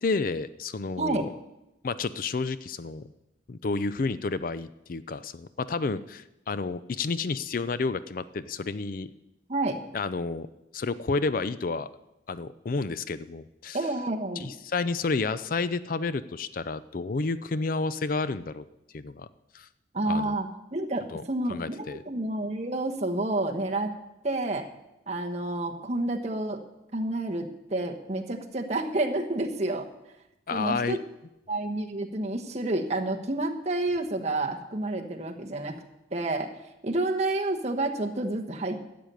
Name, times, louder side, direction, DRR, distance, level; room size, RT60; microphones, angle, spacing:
voice 1, 0.0-1.3 1.8-3.1 3.5-9.1 9.9-10.5 10.7-11.9 12.3-13.8 14.4-18.6 18.9-19.3 19.5-19.7 20.1-20.3 21.1-21.2 21.5-22.0 30.5-31.0, left 4 dB, 50° left, 15 dB, 0.4 m, -30 dB
voice 2, 1.0-1.3 9.5-9.8 13.7-14.5 19.9-24.0 24.2-24.7 25.1-26.6 26.9-29.9 30.5-31.0 31.5-35.8 36.1-36.5 36.8-38.9, right 2 dB, 35° right, 2 dB, 1.2 m, -29 dB
13.0 x 6.9 x 9.0 m, 0.92 s
head